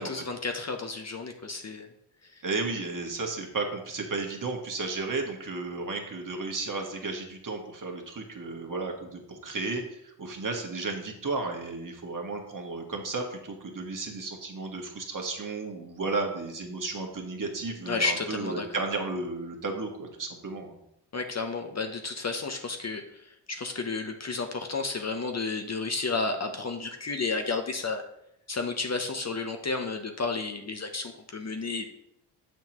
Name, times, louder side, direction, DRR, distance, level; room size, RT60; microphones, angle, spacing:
voice 1, 0.0-1.9 17.9-18.7 21.1-28.0 28.5-31.9, left 3 dB, 30° left, 5 dB, 0.8 m, -32 dB
voice 2, 2.4-20.8, right 3 dB, 40° right, 2 dB, 1.6 m, -33 dB
7.0 x 5.9 x 3.0 m, 0.78 s
supercardioid pair, 50°, 50 cm